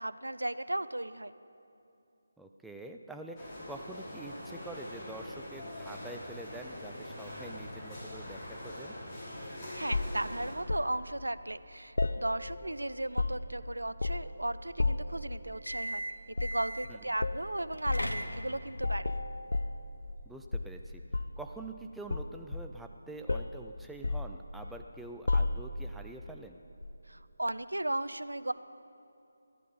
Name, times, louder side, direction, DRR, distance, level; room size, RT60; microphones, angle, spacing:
voice 1, 0.0-1.3 9.7-16.0 16.4-19.1 27.1-28.5, right 1 dB, 80° right, 14 dB, 0.4 m, -35 dB
voice 2, 2.4-8.9 16.9-17.0 20.3-21.0 21.4-26.6, right 2 dB, ahead, 3 dB, 0.4 m, -46 dB
sound 1, 3.4-10.6, left 1 dB, 15° left, 3.5 m, -43 dB
sound 2, 9.9-10.9 12.0-12.7 13.0-13.6 14.0-14.4 14.8-15.2 16.3-16.6 17.2-17.4 17.9-18.1 18.8-20.2 20.5-21.5 22.1-23.0 23.3-23.6 24.0-24.8 25.3-25.9 26.8-27.0, left 3 dB, 70° left, 0.5 m, -32 dB
sound 3, 15.5-17.0 17.7-18.8, equal, 90° left, 1.1 m, -38 dB
15.0 x 11.0 x 5.4 m, 2.7 s
figure-of-eight pair, 155°, 0 cm